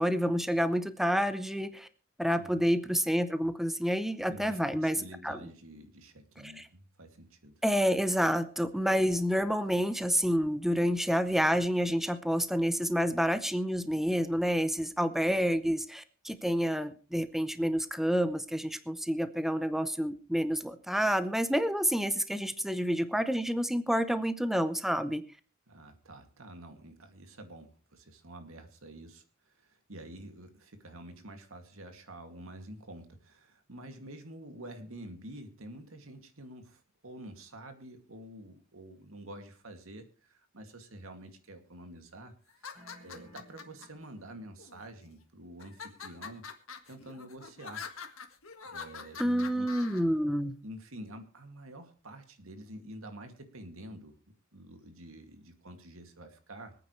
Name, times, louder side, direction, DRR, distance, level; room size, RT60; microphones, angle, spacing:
voice 1, 0.0-1.9 2.2-5.0 5.2-5.4 6.4-6.7 7.6-25.2 49.2-50.6, equal, ahead, 11 dB, 0.7 m, -29 dB
voice 2, 2.4-2.8 4.3-7.6 25.7-42.7 43.0-46.4 46.9-47.8 48.6-49.7 50.6-54.1 54.5-56.8, right 1 dB, 90° right, 6 dB, 2.4 m, -48 dB
sound 1, 42.5-43.9 44.6-45.1 45.6-50.0, left 6 dB, 80° left, 1.7 m, -45 dB
sound 2, 42.7-44.7, equal, 40° right, 7.6 m, -57 dB
25.5 x 9.1 x 3.2 m, 0.38 s
head